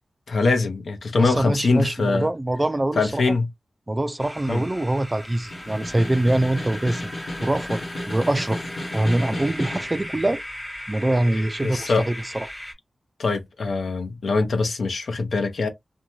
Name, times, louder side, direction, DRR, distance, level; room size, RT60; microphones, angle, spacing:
voice 1, 0.3-2.3 3.0-3.5 4.5-4.6 11.6-12.1 13.2-15.7, left 3 dB, 85° left, 0.7 m, -23 dB
voice 2, 1.2-3.2 3.9-7.1 7.4-7.8 8.1-8.6 8.9-10.4 10.9-12.5, right 1 dB, 25° right, 0.3 m, -24 dB
sound 1, 4.2-12.7, left 1 dB, 15° left, 0.9 m, -37 dB
Snare drum, 5.5-10.0, left 1 dB, 55° left, 1.1 m, -33 dB
2.7 x 2.2 x 3.0 m
wide cardioid pair, 75°, 0 cm